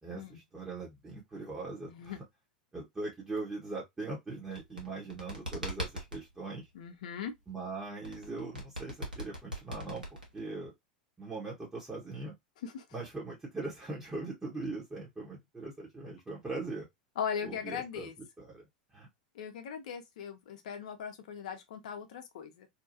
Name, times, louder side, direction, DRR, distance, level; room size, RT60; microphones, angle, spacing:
voice 1, 0.0-2.1 2.7-6.7 7.5-10.7 11.2-12.3 12.9-16.9 17.4-18.1 18.4-18.6 18.9-19.1, right 3 dB, 15° right, 1.0 m, -40 dB
voice 2, 1.9-2.2 6.7-7.3 12.6-12.9 17.2-18.1 19.3-22.7, left 7 dB, 60° left, 0.7 m, -39 dB
sound 1, 4.4-6.2 8.0-10.6, equal, 85° right, 1.0 m, -40 dB
2.8 x 2.3 x 2.6 m
figure-of-eight pair, 85°, 5 cm